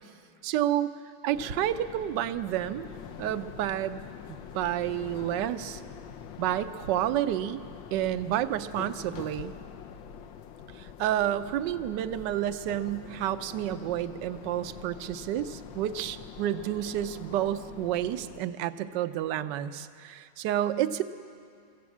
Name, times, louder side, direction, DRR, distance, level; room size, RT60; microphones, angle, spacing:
voice 1, 0.4-0.9 1.2-2.9 3.2-4.0 4.3-5.8 6.4-7.6 7.9-9.5 10.7-21.0, right 12 dB, 70° right, 12 dB, 1.3 m, -30 dB
sound 1, 1.3-18.4, left 7 dB, 75° left, 1.5 m, -44 dB
23.0 x 15.0 x 8.4 m, 2.4 s
omnidirectional pair, 2.1 m